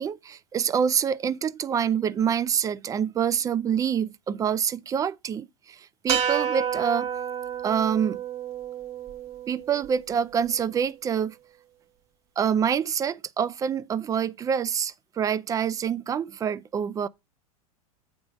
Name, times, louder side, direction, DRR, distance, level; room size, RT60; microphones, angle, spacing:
voice 1, 0.0-7.1 7.6-8.2 9.5-11.4 12.4-17.1, right 8 dB, 20° right, 0.3 m, -26 dB
sound 1, 6.1-10.4, right 8 dB, 35° right, 1.3 m, -30 dB
8.6 x 3.5 x 6.0 m
hypercardioid pair, 110°, 18 cm